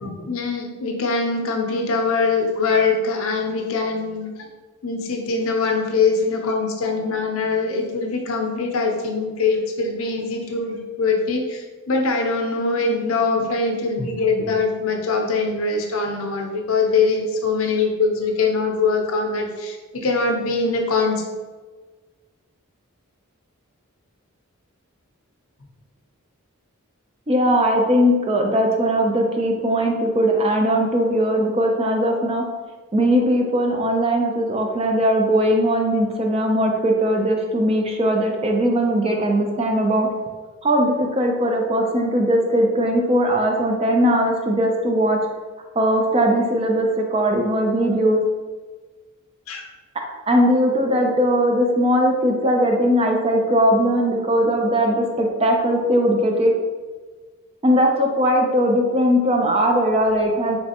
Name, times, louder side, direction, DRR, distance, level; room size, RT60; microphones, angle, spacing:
voice 1, 0.0-4.3 4.8-21.2 49.5-49.6 50.9-51.1, left 4 dB, 70° left, 2 dB, 0.6 m, -22 dB
voice 2, 27.3-32.4 32.9-40.1 40.6-45.2 45.8-48.2 50.3-56.5 57.6-60.6, equal, 25° right, 2 dB, 0.4 m, -19 dB
3.2 x 3.1 x 2.8 m, 1.3 s
head